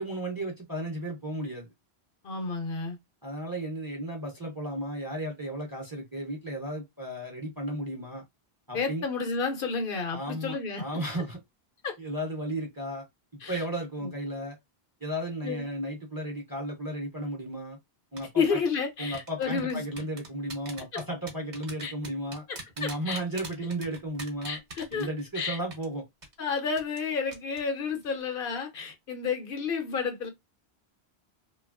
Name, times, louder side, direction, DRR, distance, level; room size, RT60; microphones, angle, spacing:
voice 1, 0.0-1.7 3.2-8.2 8.7-9.0 10.1-11.4 12.0-13.0 13.5-14.6 15.0-17.8 18.1-18.6 19.0-22.4 22.8-24.6 24.9-26.0, right 1 dB, 25° right, 0.6 m, -34 dB
voice 2, 2.2-3.0 8.7-10.8 11.8-11.9 13.4-13.6 14.0-14.1 15.4-15.6 18.4-19.8 20.9-21.0 21.8-21.9 22.8-23.2 24.4-25.1 25.3-25.6 26.4-30.3, left 5 dB, 65° left, 0.7 m, -31 dB
sound 1, 18.2-18.5 19.1-25.4 25.7-25.9 26.2-26.3 26.8-27.1 27.3-27.6 27.9-28.1, right 2 dB, 45° right, 0.9 m, -42 dB
2.9 x 2.2 x 2.3 m
omnidirectional pair, 1.1 m